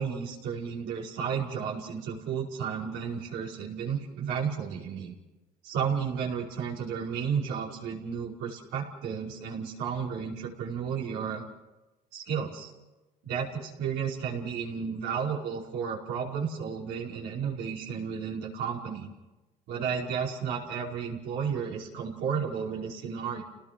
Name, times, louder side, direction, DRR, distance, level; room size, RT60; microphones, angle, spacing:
voice 1, 0.0-5.2 5.6-11.4 12.1-12.7 13.2-19.1 19.7-23.4, right 7 dB, 90° right, -3 dB, 5.2 m, -32 dB
29.5 x 19.0 x 6.1 m, 1.1 s
cardioid pair, 110°, 17 cm